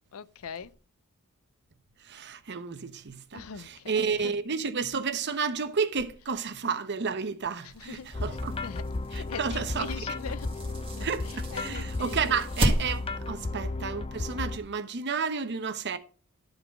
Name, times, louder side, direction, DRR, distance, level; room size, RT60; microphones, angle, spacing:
voice 1, 0.1-0.7 3.3-4.3 7.6-8.2 8.6-8.8 9.1-10.7 11.0-12.4, left 6 dB, 80° left, 0.5 m, -42 dB
voice 2, 2.0-8.5 9.1-9.9 11.0-16.0, right 5 dB, 55° right, 0.9 m, -31 dB
sound 1, 7.7-13.3, right 1 dB, 25° right, 2.1 m, -34 dB
sound 2, 8.1-14.6, left 2 dB, 25° left, 0.5 m, -34 dB
12.0 x 4.0 x 5.9 m
head